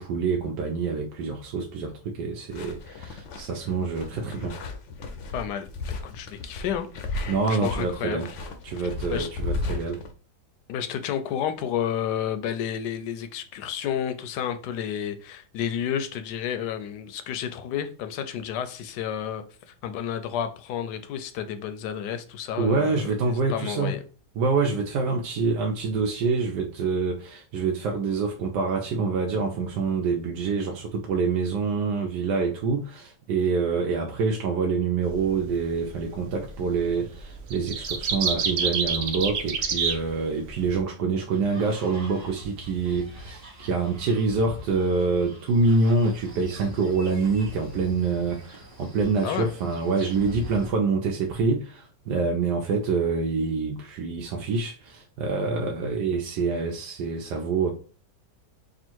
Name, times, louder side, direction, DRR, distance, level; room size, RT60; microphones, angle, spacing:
voice 1, 0.0-4.6 7.3-8.3 8.6-10.0 22.6-24.0 24.4-57.7, right 4 dB, 85° right, 1.2 m, -26 dB
sound 1, 2.5-10.1, left 3 dB, 60° left, 0.8 m, -34 dB
voice 2, 5.3-6.9 7.5-8.2 9.1-9.3 10.7-19.4 19.8-23.0 23.3-24.0 49.2-49.5, left 9 dB, 80° left, 1.1 m, -31 dB
sound 2, 35.1-35.3 36.5-36.9 37.2-40.8, right 5 dB, 60° right, 0.8 m, -27 dB
sound 3, 41.3-50.7, equal, 40° right, 1.2 m, -43 dB
3.5 x 2.5 x 4.4 m
omnidirectional pair, 1.8 m